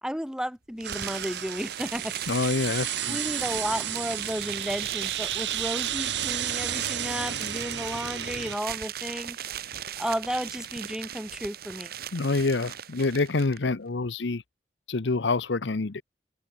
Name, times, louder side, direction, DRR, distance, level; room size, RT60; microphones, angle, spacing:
voice 1, 0.0-2.1 3.1-9.4 10.0-11.9, equal, 5° right, 2.8 m, -33 dB
sound 1, 0.8-13.6, right 10 dB, 60° right, 1.1 m, -38 dB
sound 2, 0.8-8.6, right 10 dB, 85° right, 1.7 m, -32 dB
voice 2, 2.3-3.2 12.1-14.4 14.9-16.0, left 3 dB, 85° left, 0.8 m, -27 dB
open air
head